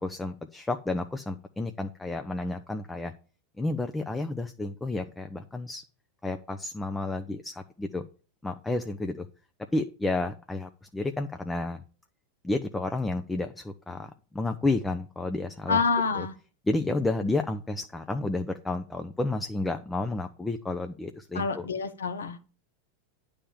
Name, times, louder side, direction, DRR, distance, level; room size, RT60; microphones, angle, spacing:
voice 1, 0.0-3.1 3.6-5.8 6.2-8.0 8.4-9.3 9.7-11.8 12.4-15.8 16.1-16.3 16.7-21.7, left 2 dB, 10° left, 7 dB, 0.6 m, -31 dB
voice 2, 15.7-16.3 21.3-22.4, left 5 dB, 80° left, 10 dB, 0.9 m, -27 dB
9.9 x 3.5 x 7.1 m, 0.39 s
hypercardioid pair, 90°, 0 cm